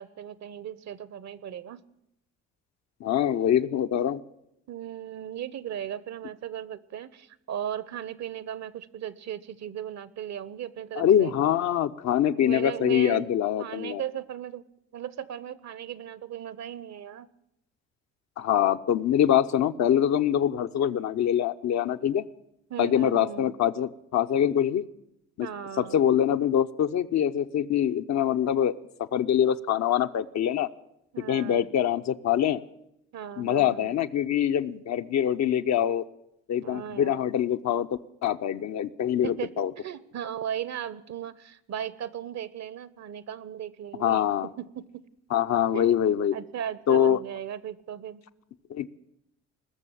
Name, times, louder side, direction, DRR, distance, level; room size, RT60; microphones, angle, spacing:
voice 1, 0.0-1.8 4.7-11.3 12.4-13.3 13.6-14.6 14.9-17.3 22.7-23.5 25.4-26.0 31.1-31.7 33.1-34.0 36.6-37.2 39.2-44.2 44.6-45.0 45.7-45.8 46.3-48.2, right 10 dB, 55° right, 18 dB, 1.0 m, -37 dB
voice 2, 3.0-4.2 11.0-14.0 18.4-22.3 22.8-24.8 25.4-25.5 25.8-28.7 29.0-30.7 31.3-32.6 33.4-36.0 36.5-39.7 44.0-44.5 45.3-46.4 46.9-47.2 48.7-49.0, left 10 dB, 55° left, 9 dB, 0.8 m, -24 dB
20.0 x 6.9 x 10.0 m, 0.81 s
hypercardioid pair, 55°, 32 cm